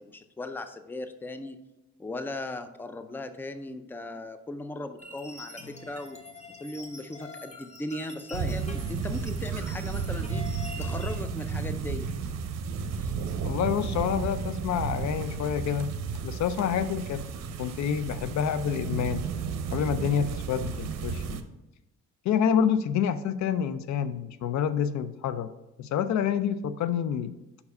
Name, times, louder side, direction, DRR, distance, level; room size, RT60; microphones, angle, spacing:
voice 1, 0.0-1.6 2.0-6.2 6.6-10.5 10.8-12.1 13.0-13.1, left 2 dB, 5° left, 9 dB, 0.4 m, -38 dB
sound 1, 5.0-11.2, left 2 dB, 20° left, 1.1 m, -45 dB
sound 2, 8.3-21.4, right 5 dB, 60° right, 0.6 m, -33 dB
voice 2, 13.4-15.9 16.2-17.2 17.6-19.3 19.7-21.4 22.3-25.5 25.8-27.3, left 8 dB, 65° left, 13 dB, 0.5 m, -28 dB
5.3 x 4.7 x 5.3 m, 0.97 s
cardioid pair, 90°, 30 cm